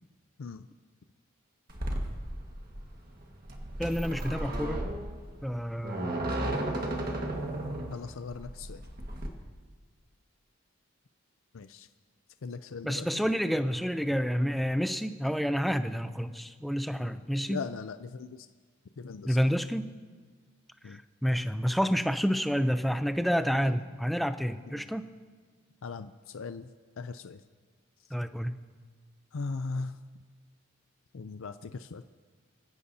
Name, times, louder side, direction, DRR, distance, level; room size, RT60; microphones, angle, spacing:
sound 1, 1.7-9.3, right 1 dB, 40° right, 1.7 m, -34 dB
voice 1, 3.8-4.9 5.4-6.1 12.8-17.6 19.2-19.9 20.8-25.1 28.1-28.5, equal, ahead, 9 dB, 0.5 m, -29 dB
voice 2, 7.9-8.8 11.5-11.9 12.4-13.1 17.5-18.5 19.0-19.4 20.8-21.0 23.6-23.7 24.7-24.8 25.8-26.7 27.0-27.4 29.3-29.9 31.1-32.0, left 4 dB, 65° left, 10 dB, 0.5 m, -39 dB
25.0 x 16.0 x 2.8 m, 1.6 s
head